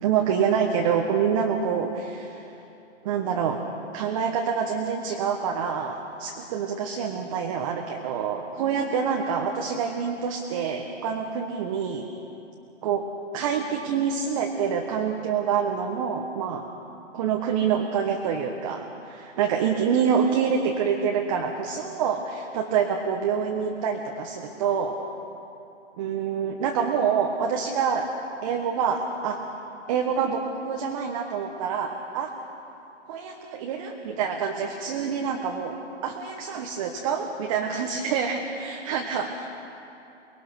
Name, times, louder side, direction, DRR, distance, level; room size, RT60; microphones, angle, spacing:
voice 1, 0.0-2.5 3.0-3.6 3.9-12.1 12.8-13.1 13.3-16.7 17.1-25.0 26.0-28.1 28.4-29.4 29.9-32.3 33.1-39.5, right 7 dB, 25° right, 2 dB, 1.3 m, -26 dB
23.5 x 21.5 x 6.2 m, 2.8 s
hypercardioid pair, 150°, 37 cm